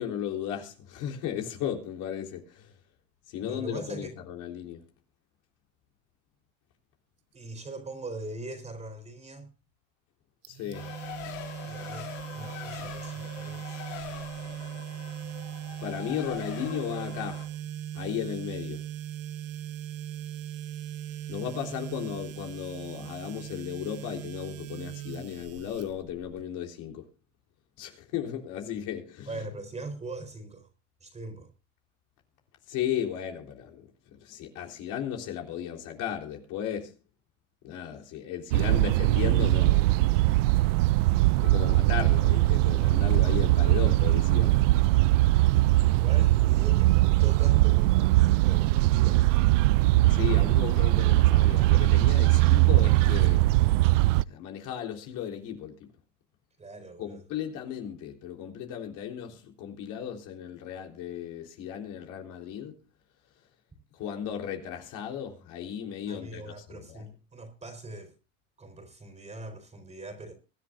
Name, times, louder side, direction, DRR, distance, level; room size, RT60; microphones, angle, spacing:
voice 1, 0.0-2.7 3.3-4.8 10.5-10.9 15.8-17.5 17.9-18.9 21.3-27.0 27.8-29.5 32.7-36.9 37.6-40.1 41.4-44.8 49.8-53.5 54.3-55.9 57.0-62.7 63.9-67.1, left 10 dB, 55° left, 3.7 m, -35 dB
voice 2, 3.4-4.1 7.3-9.5 11.6-13.9 29.3-30.7 31.0-31.5 38.7-38.8 45.8-49.3 56.6-57.2 66.1-68.1 68.6-70.3, right 2 dB, 20° right, 4.0 m, -41 dB
sound 1, 10.4-26.4, right 11 dB, 40° right, 1.2 m, -39 dB
Race car auto racing, 10.7-17.5, left 11 dB, 80° left, 3.0 m, -43 dB
sound 2, 38.5-54.2, right 18 dB, 85° right, 0.5 m, -21 dB
23.5 x 10.5 x 2.5 m
supercardioid pair, 115°, 37 cm